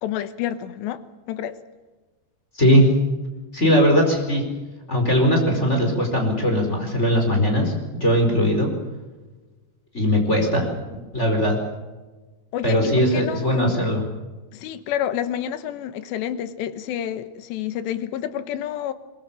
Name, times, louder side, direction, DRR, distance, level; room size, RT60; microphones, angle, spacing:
voice 1, 0.0-1.0 1.3-1.6 12.5-13.7 14.5-18.9, left 10 dB, 90° left, 11 dB, 3.3 m, -29 dB
voice 2, 3.5-4.4 4.9-7.7 8.0-8.7 9.9-10.7 11.1-11.5 12.6-14.0, equal, 15° left, 3 dB, 4.5 m, -19 dB
22.5 x 21.5 x 7.2 m, 1.2 s
omnidirectional pair, 4.9 m